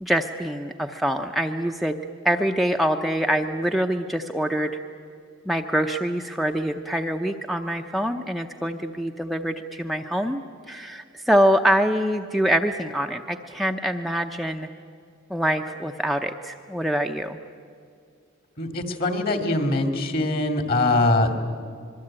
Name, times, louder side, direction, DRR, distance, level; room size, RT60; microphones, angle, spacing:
voice 1, 0.0-2.0 2.2-4.8 5.5-10.4 10.7-14.7 15.3-17.4, equal, ahead, 3 dB, 0.7 m, -24 dB
voice 2, 18.6-21.3, left 2 dB, 45° left, 6 dB, 2.5 m, -22 dB
26.0 x 22.5 x 8.8 m, 2.3 s
head